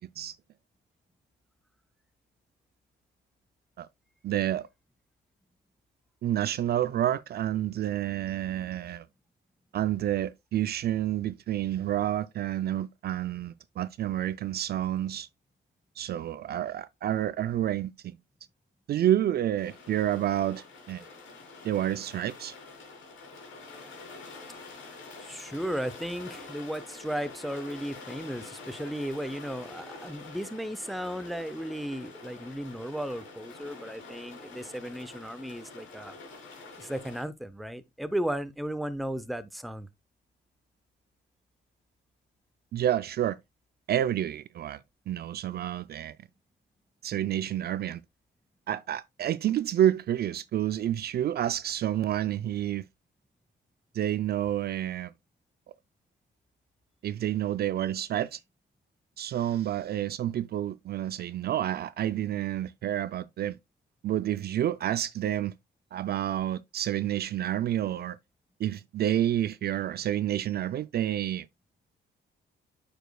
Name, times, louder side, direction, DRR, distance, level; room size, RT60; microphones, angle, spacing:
voice 1, 4.2-4.7 6.2-9.1 9.7-15.3 16.0-18.1 18.9-21.0 21.6-22.5 42.7-43.4 43.9-44.8 45.1-46.2 47.0-48.0 48.7-52.9 53.9-55.1 57.0-58.4 59.2-63.6 64.0-65.5 65.9-68.2 68.6-71.5, right 11 dB, 55° right, 0.4 m, -29 dB
sound 1, 19.6-37.2, left 3 dB, 80° left, 3.0 m, -46 dB
voice 2, 25.2-36.2 36.8-39.9, equal, ahead, 0.6 m, -35 dB
8.9 x 5.1 x 2.2 m
cardioid pair, 90°, 20 cm